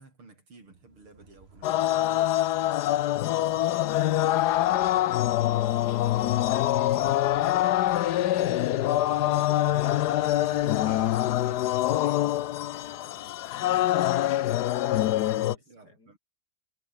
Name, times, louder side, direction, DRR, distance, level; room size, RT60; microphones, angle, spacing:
voice 1, 0.0-2.9 14.9-15.0 15.4-16.2, right 3 dB, 80° right, 6.6 m, -53 dB
sound 1, 0.7-15.2, right 1 dB, 25° right, 6.1 m, -50 dB
sound 2, 1.6-15.5, left 14 dB, 70° left, 1.0 m, -25 dB
voice 2, 14.2-16.1, left 2 dB, 45° left, 6.0 m, -55 dB
omnidirectional pair, 2.3 m